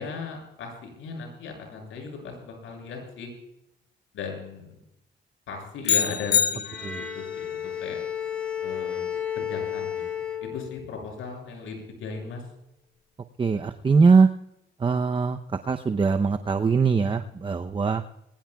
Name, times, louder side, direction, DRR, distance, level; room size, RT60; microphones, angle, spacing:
voice 1, 0.0-3.3 4.1-4.7 5.5-8.0 8.6-9.1 9.4-10.0 10.4-12.4, left 5 dB, 80° left, 2 dB, 6.9 m, -37 dB
sound 1, 5.9-7.3, left 8 dB, 60° left, 0.9 m, -25 dB
Bowed string instrument, 6.6-11.1, left 9 dB, 5° left, 2.6 m, -32 dB
voice 2, 13.4-14.3 14.8-15.4 15.7-18.0, right 5 dB, 25° right, 8 dB, 0.7 m, -21 dB
21.5 x 19.5 x 2.3 m, 0.81 s
cardioid pair, 90°, 20 cm